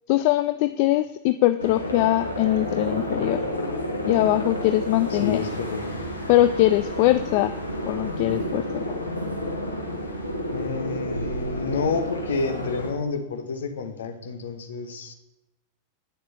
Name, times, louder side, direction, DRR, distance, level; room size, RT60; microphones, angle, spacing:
voice 1, 0.1-3.4 4.1-5.4 6.3-7.5 7.9-8.8, left 15 dB, 45° left, 11 dB, 0.3 m, -22 dB
sound 1, 1.6-12.9, left 1 dB, 85° left, 1.2 m, -30 dB
voice 2, 5.1-5.9 10.5-15.1, left 4 dB, 65° left, 7 dB, 1.0 m, -29 dB
9.6 x 6.7 x 4.0 m, 0.96 s
figure-of-eight pair, 90°, 0 cm